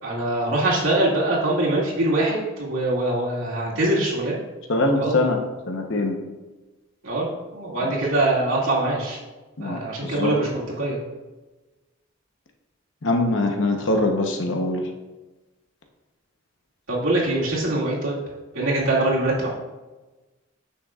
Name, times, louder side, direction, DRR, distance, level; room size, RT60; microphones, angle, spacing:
voice 1, 0.0-4.4 4.9-5.1 7.0-9.2 9.6-11.0 16.9-18.2 18.5-19.5, right 2 dB, 75° right, -5 dB, 2.4 m, -23 dB
voice 2, 4.7-5.4 5.7-6.2 7.8-7.9 9.6-10.3 13.0-14.9, left 2 dB, 65° left, 3 dB, 1.0 m, -23 dB
9.4 x 6.4 x 2.4 m, 1.1 s
head